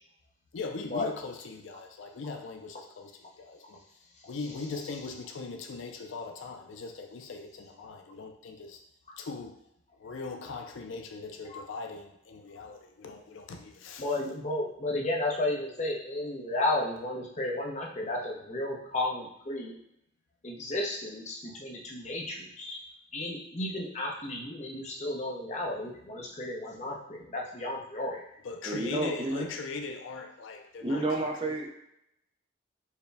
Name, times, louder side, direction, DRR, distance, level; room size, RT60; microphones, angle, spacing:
voice 1, 0.5-3.8 4.3-8.8 9.2-9.6 9.9-14.1 28.4-31.6, left 4 dB, 70° left, 5 dB, 0.4 m, -40 dB
voice 2, 14.0-19.8 20.4-22.8 23.1-28.3, left 2 dB, 35° left, -1 dB, 0.7 m, -33 dB
voice 3, 28.6-29.4 30.8-31.7, right 2 dB, 25° right, 1 dB, 0.4 m, -30 dB
4.6 x 2.2 x 3.3 m, 0.76 s
head